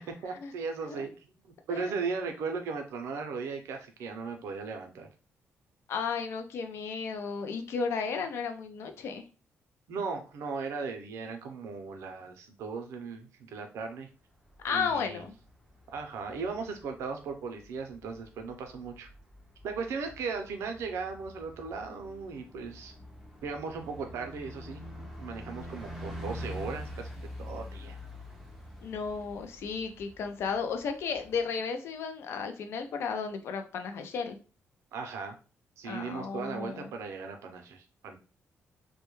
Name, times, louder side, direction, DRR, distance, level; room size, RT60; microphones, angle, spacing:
voice 1, 0.2-1.4 1.7-5.1 9.9-14.1 14.7-15.2 15.9-19.1 19.6-22.9 23.4-24.8 25.2-27.1 27.4-28.0 34.9-35.4 35.8-38.2, right 5 dB, 75° right, 5 dB, 0.5 m, -37 dB
voice 2, 5.9-9.3 14.6-15.3 28.8-34.4 35.8-36.9, left 5 dB, 60° left, 6 dB, 0.4 m, -34 dB
Bus, 14.3-31.4, left 1 dB, ahead, 0.4 m, -46 dB
2.2 x 2.1 x 2.9 m, 0.34 s
cardioid pair, 180°, 5 cm